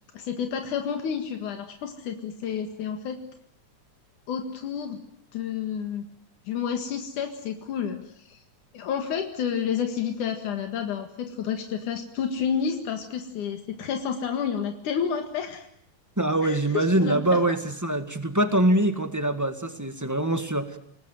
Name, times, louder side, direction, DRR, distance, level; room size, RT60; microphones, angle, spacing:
voice 1, 0.1-3.2 4.3-5.0 5.3-6.1 6.5-8.4 8.7-15.7 16.4-17.4, left 7 dB, 90° left, 5 dB, 3.3 m, -30 dB
voice 2, 16.2-20.8, right 1 dB, 10° right, 8 dB, 0.9 m, -24 dB
29.0 x 19.0 x 9.2 m, 0.66 s
omnidirectional pair, 3.4 m